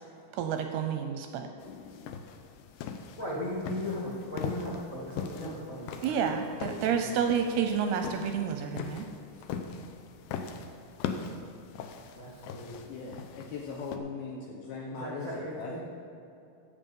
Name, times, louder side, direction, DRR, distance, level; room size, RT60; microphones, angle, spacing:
voice 1, 0.3-1.5 6.0-9.1, right 7 dB, 80° right, 6 dB, 2.5 m, -29 dB
sound 1, 1.6-14.0, left 6 dB, 90° left, 2.0 m, -41 dB
voice 2, 3.2-7.5 9.3-9.4 12.1-12.9 14.9-15.8, left 1 dB, 45° left, -5 dB, 1.0 m, -38 dB
voice 3, 12.9-15.8, left 4 dB, 70° left, -2 dB, 2.5 m, -39 dB
15.5 x 7.4 x 5.4 m, 2.7 s
omnidirectional pair, 5.2 m